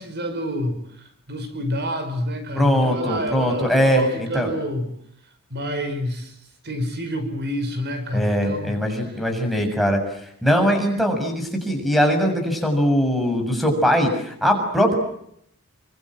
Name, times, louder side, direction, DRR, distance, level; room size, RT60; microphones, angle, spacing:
voice 1, 0.0-4.9 5.5-6.4 6.6-8.7, equal, 50° right, 8 dB, 5.2 m, -28 dB
voice 2, 2.5-4.5 8.1-10.0 10.4-15.0, equal, ahead, 2 dB, 7.1 m, -21 dB
29.5 x 25.5 x 7.7 m, 0.71 s
head